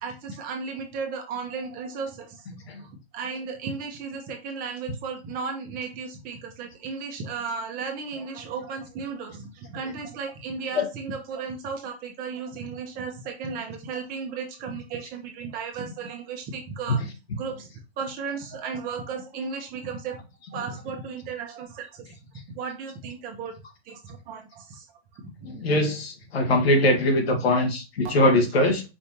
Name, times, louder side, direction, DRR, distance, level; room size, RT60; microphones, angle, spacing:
voice 1, 0.0-2.5 2.8-17.0 17.3-17.7 18.0-20.2 20.5-22.1 22.5-23.5 23.9-24.9 25.2-25.3, right 5 dB, 25° right, 1.1 m, -35 dB
voice 2, 25.4-28.8, left 1 dB, 70° left, 1.6 m, -21 dB
5.0 x 3.4 x 2.9 m
hypercardioid pair, 130°, 32 cm